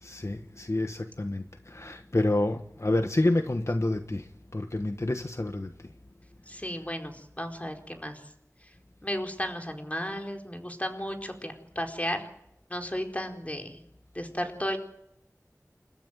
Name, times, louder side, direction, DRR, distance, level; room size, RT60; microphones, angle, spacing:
voice 1, 0.0-5.9, left 2 dB, 55° left, 1.3 m, -29 dB
voice 2, 6.5-8.2 9.0-12.3 12.7-13.8 14.1-14.8, equal, 25° left, 4.3 m, -34 dB
29.5 x 13.5 x 9.3 m
wide cardioid pair, 45°, 6 cm